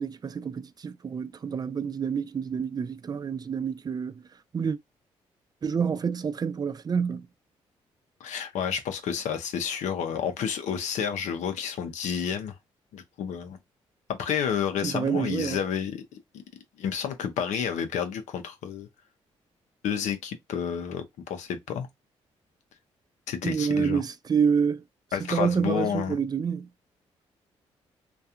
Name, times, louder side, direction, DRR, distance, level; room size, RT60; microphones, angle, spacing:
voice 1, 0.0-4.1 4.5-4.8 5.6-7.2 14.8-15.6 23.4-24.8 25.3-26.7, right 6 dB, 35° right, 0.3 m, -28 dB
voice 2, 8.2-12.5 12.9-13.6 14.1-16.0 16.8-18.9 19.8-21.9 23.3-24.0 25.1-26.2, left 8 dB, 75° left, 0.6 m, -30 dB
2.3 x 2.3 x 2.7 m
supercardioid pair, 55°, 12 cm